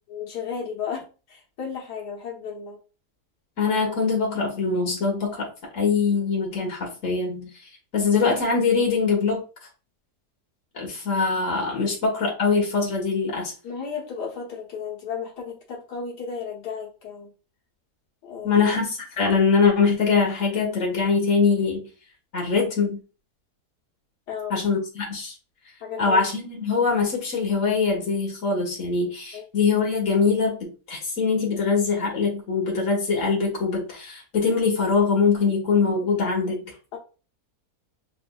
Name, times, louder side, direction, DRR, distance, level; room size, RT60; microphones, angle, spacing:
voice 1, 0.1-2.8 11.8-12.0 13.6-17.3 18.2-18.7 24.3-24.6 25.8-26.3 29.3-29.4 36.9-37.0, left 6 dB, 90° left, -2 dB, 1.7 m, -34 dB
voice 2, 3.6-5.5 5.7-7.5 7.9-9.4 10.7-13.5 18.4-21.8 22.3-23.0 24.5-25.3 26.0-36.7, left 5 dB, 55° left, -2 dB, 1.7 m, -23 dB
6.0 x 2.5 x 2.2 m, 0.33 s
omnidirectional pair, 1.7 m